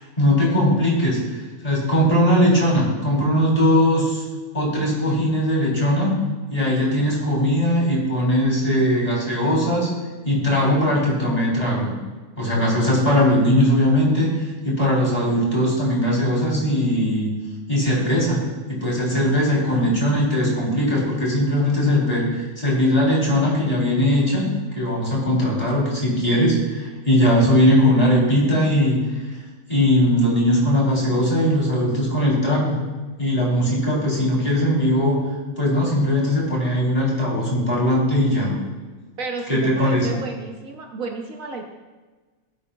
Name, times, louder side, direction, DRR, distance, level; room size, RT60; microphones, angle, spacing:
voice 1, 0.2-4.2 4.5-6.1 6.5-9.9 10.2-11.9 12.4-14.3 14.6-17.3 17.7-18.4 18.7-24.5 24.7-29.0 29.7-32.7 33.2-35.2 35.6-38.5 39.5-40.1, equal, 25° left, -5 dB, 3.5 m, -19 dB
voice 2, 39.2-41.6, right 3 dB, 65° right, 3 dB, 1.2 m, -32 dB
17.5 x 8.4 x 2.3 m, 1.3 s
omnidirectional pair, 1.6 m